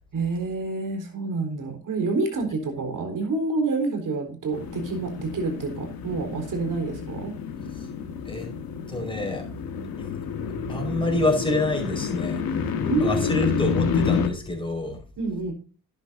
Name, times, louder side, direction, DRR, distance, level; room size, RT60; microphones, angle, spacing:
voice 1, 0.1-7.3 12.9-13.5 15.2-15.5, right 3 dB, 60° right, 4 dB, 4.2 m, -28 dB
sound 1, 4.5-14.3, left 6 dB, 85° left, 1.8 m, -29 dB
voice 2, 8.9-9.5 10.0-10.1 10.7-15.0, left 2 dB, 15° left, 1 dB, 5.0 m, -27 dB
11.0 x 9.9 x 2.7 m, 0.36 s
cardioid pair, 65°, 35 cm